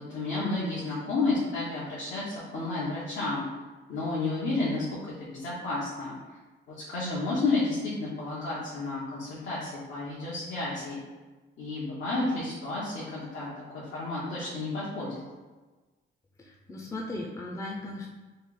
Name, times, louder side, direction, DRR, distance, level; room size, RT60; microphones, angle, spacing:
voice 1, 0.0-3.4 3.9-6.1 6.7-11.0 11.6-15.2, left 3 dB, 70° left, -8 dB, 1.0 m, -31 dB
voice 2, 16.4-18.1, left 2 dB, 15° left, -2 dB, 0.5 m, -37 dB
3.2 x 2.4 x 3.8 m, 1.3 s
cardioid pair, 90°, 20 cm